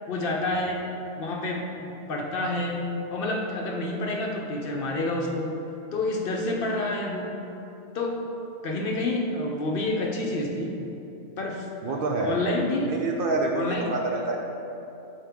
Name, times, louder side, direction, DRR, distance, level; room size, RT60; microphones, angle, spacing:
voice 1, 0.1-0.9 1.2-5.6 5.9-7.3 7.9-8.2 8.6-10.8 11.4-12.9 13.5-13.8, left 2 dB, 60° left, 0 dB, 0.8 m, -29 dB
voice 2, 11.8-12.4 12.8-14.4, right 2 dB, 60° right, 1 dB, 0.7 m, -27 dB
7.2 x 4.7 x 3.5 m, 2.9 s
omnidirectional pair, 1.2 m